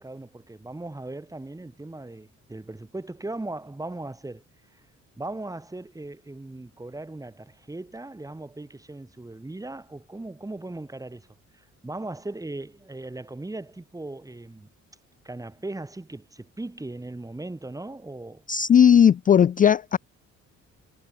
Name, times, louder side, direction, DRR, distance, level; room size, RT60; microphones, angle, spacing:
voice 1, 0.0-4.4 4.7-4.8 5.2-11.3 11.5-14.7 15.2-18.4, right 2 dB, 10° right, 1.5 m, -38 dB
voice 2, 18.5-20.0, left 8 dB, 30° left, 0.3 m, -17 dB
cardioid pair, 90°, 30 cm